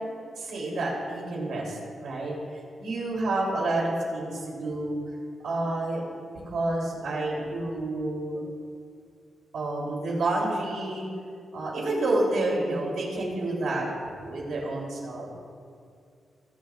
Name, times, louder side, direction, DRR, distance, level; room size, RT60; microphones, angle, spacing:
voice 1, 0.3-2.3 2.8-5.0 5.4-6.0 6.4-8.4 9.5-11.1 11.5-13.9 14.2-15.3, right 2 dB, 75° right, -3 dB, 3.4 m, -29 dB
22.0 x 9.3 x 2.5 m, 2.3 s
wide cardioid pair, 175°, 0 cm